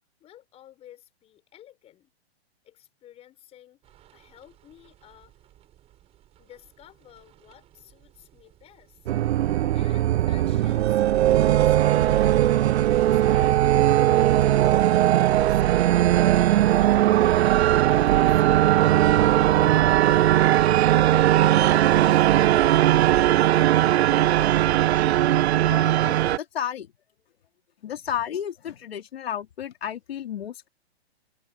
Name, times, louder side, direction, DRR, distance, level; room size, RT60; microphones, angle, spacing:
voice 1, 0.2-2.1 2.6-3.8 4.1-5.4 6.4-9.1 9.7-12.7 12.9-14.8 15.5-17.3 17.8-20.5 20.8-23.4, left 12 dB, 20° left, 7.5 m, -51 dB
sound 1, 3.8-22.1, right 12 dB, 20° right, 4.4 m, -57 dB
sound 2, 9.1-26.4, right 13 dB, 80° right, 0.5 m, -19 dB
voice 2, 25.7-26.9 27.8-30.7, left 9 dB, 70° left, 3.2 m, -32 dB
hypercardioid pair, 155°, 32 cm